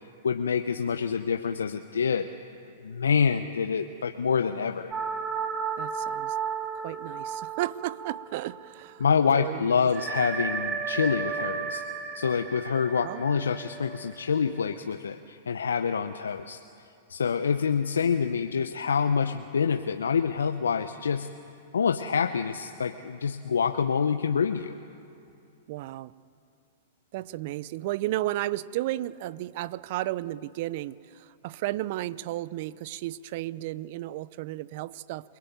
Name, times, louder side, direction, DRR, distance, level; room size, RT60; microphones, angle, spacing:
voice 1, 0.2-2.3 2.8-4.9 9.0-11.8 12.1-16.6 17.1-21.3 21.7-24.8, left 6 dB, 80° left, 7 dB, 0.9 m, -26 dB
sound 1, 4.9-8.9 9.2-9.3 9.9-14.6, right 6 dB, 20° right, 2.1 m, -34 dB
voice 2, 5.8-6.4 6.8-9.0 9.3-9.9 13.0-13.5 25.7-26.1 27.1-35.4, right 16 dB, 50° right, 19 dB, 0.7 m, -33 dB
28.0 x 19.5 x 9.3 m, 2.6 s
hypercardioid pair, 110°, 0 cm